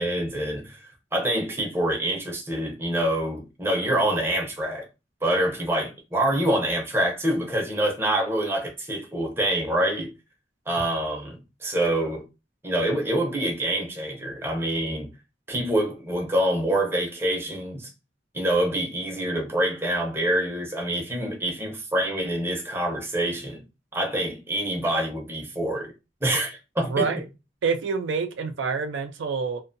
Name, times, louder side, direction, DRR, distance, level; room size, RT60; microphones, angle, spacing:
voice 1, 0.0-4.9 5.2-10.1 10.7-12.2 12.6-15.1 15.5-17.9 18.3-23.6 23.9-25.9 26.2-27.1, right 1 dB, 10° right, 0.6 m, -26 dB
voice 2, 26.9-27.2 27.6-29.6, right 5 dB, 75° right, 0.4 m, -27 dB
2.5 x 2.2 x 2.5 m
head